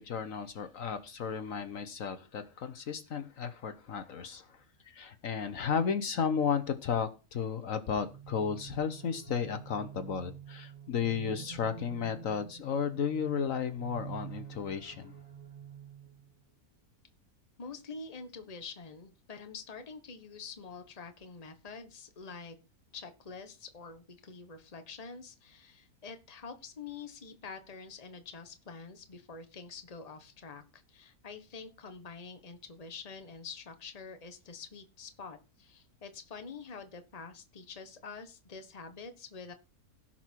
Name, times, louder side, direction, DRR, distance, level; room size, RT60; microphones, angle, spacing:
voice 1, 0.0-15.1, left 7 dB, 65° left, 10 dB, 1.3 m, -34 dB
sound 1, 8.0-16.3, right 8 dB, 65° right, 0.3 m, -48 dB
voice 2, 17.6-22.6 22.9-39.5, left 5 dB, 30° left, 8 dB, 1.2 m, -46 dB
16.0 x 6.0 x 4.6 m, 0.30 s
omnidirectional pair, 1.6 m